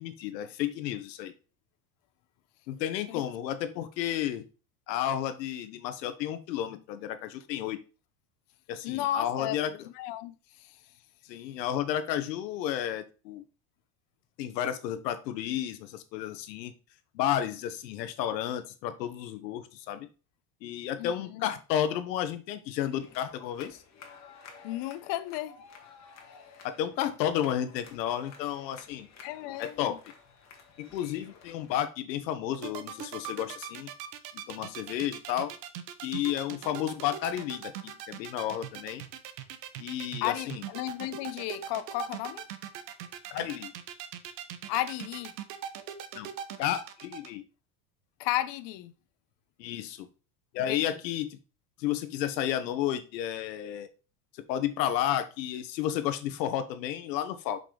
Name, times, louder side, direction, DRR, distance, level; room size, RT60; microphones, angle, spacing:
voice 1, 0.0-1.3 2.7-4.4 4.9-7.8 8.7-9.9 11.3-13.4 14.4-16.7 17.1-20.1 20.6-23.8 26.6-29.1 29.6-30.0 30.8-33.9 34.5-35.5 36.0-39.0 39.8-40.6 43.3-43.7 46.1-46.3 46.6-47.4 49.6-50.1 50.5-51.4 51.8-53.9 54.5-57.6, left 11 dB, 90° left, 1.3 m, -32 dB
voice 2, 8.8-10.8 21.0-21.5 24.6-25.6 29.2-30.0 40.2-42.5 44.7-45.3 48.2-48.9 50.6-50.8, left 14 dB, 55° left, 0.9 m, -34 dB
sound 1, 22.9-31.9, left 5 dB, 35° left, 1.9 m, -53 dB
sound 2, 32.5-47.3, right 10 dB, 85° right, 1.2 m, -40 dB
7.4 x 5.5 x 3.9 m
supercardioid pair, 120°, 49 cm